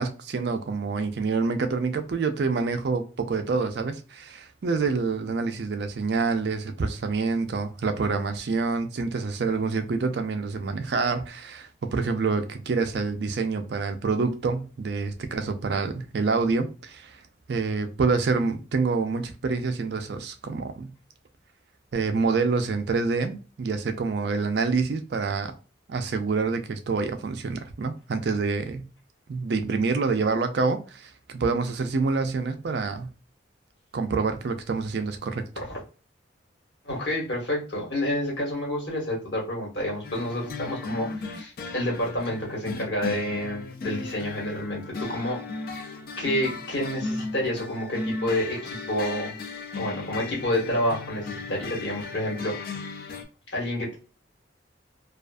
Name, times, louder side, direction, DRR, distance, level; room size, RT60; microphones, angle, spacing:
voice 1, 0.0-17.2 17.5-20.9 21.9-25.5 25.9-28.9 29.3-33.1 33.9-35.5, right 4 dB, 55° right, 0.4 m, -27 dB
voice 2, 36.8-45.4 46.2-49.3 49.8-53.0 53.5-54.0, left 1 dB, 65° left, 1.3 m, -29 dB
sound 1, 40.0-53.2, left 3 dB, 50° left, 0.4 m, -36 dB
2.5 x 2.3 x 2.2 m
head